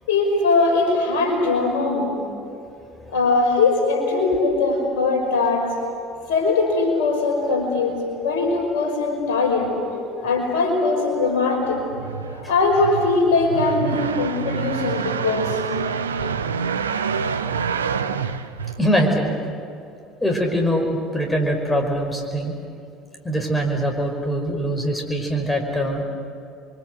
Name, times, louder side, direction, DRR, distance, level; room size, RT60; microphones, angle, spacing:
voice 1, 0.1-2.1 3.1-5.7 6.3-8.0 8.2-11.8 12.3-15.6, left 3 dB, 65° left, 2 dB, 5.3 m, -21 dB
sound 1, 11.6-19.2, right 6 dB, 80° right, 0.7 m, -27 dB
voice 2, 18.8-19.3 20.2-22.6 23.2-26.0, equal, 10° left, 2 dB, 5.3 m, -22 dB
29.5 x 23.5 x 8.1 m, 2.4 s
figure-of-eight pair, 60°, 0 cm